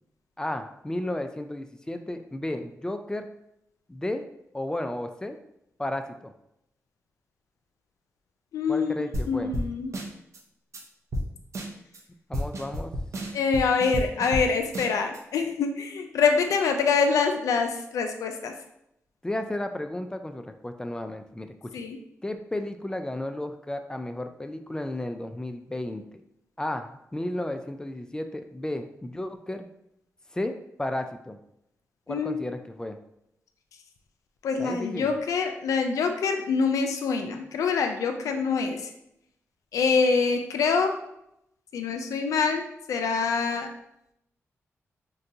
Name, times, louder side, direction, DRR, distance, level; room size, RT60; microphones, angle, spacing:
voice 1, 0.4-3.3 3.9-4.2 4.5-5.4 5.8-6.3 8.7-9.5 12.3-12.9 19.2-21.7 22.2-26.0 26.6-29.7 30.3-31.4 32.1-33.0 34.6-35.2, left 1 dB, 15° left, 7 dB, 0.3 m, -33 dB
voice 2, 8.5-8.9 9.3-9.9 13.3-18.5 21.7-22.0 32.1-32.4 34.4-38.8 39.7-41.0 41.7-43.7, left 5 dB, 90° left, 5 dB, 0.4 m, -25 dB
sound 1, 9.1-9.3 9.5-9.7 9.9-10.4 10.7-10.8 11.1-11.3 11.5-12.0 12.3-14.5 14.7-15.2, equal, 65° right, 0.6 m, -31 dB
3.8 x 2.2 x 2.7 m, 0.81 s
cardioid pair, 60°, 5 cm